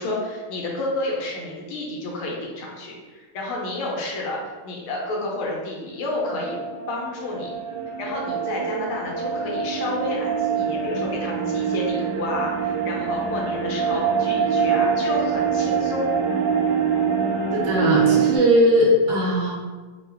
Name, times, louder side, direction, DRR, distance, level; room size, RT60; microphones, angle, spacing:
voice 1, 0.0-6.6 6.9-7.5 8.0-16.4, left 2 dB, 80° left, -2 dB, 1.6 m, -30 dB
sound 1, 6.1-18.4, right 6 dB, 85° right, 1.5 m, -24 dB
voice 2, 17.5-19.5, equal, 70° right, -3 dB, 1.4 m, -19 dB
3.7 x 2.1 x 3.4 m, 1.4 s
omnidirectional pair, 2.4 m